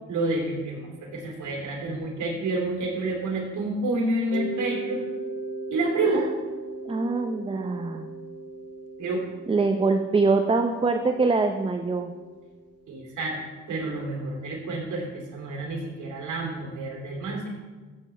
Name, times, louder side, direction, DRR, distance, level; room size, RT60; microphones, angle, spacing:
voice 1, 0.1-5.0 5.7-6.3 9.0-9.3 12.9-13.4 13.7-17.5, right 2 dB, 75° right, -2 dB, 2.9 m, -29 dB
Mallet percussion, 4.3-12.9, right 3 dB, 50° right, 1.0 m, -38 dB
voice 2, 6.9-8.1 9.5-12.1, right 3 dB, 20° right, 6 dB, 0.6 m, -24 dB
15.0 x 7.6 x 3.3 m, 1.3 s
cardioid pair, 90°, 30 cm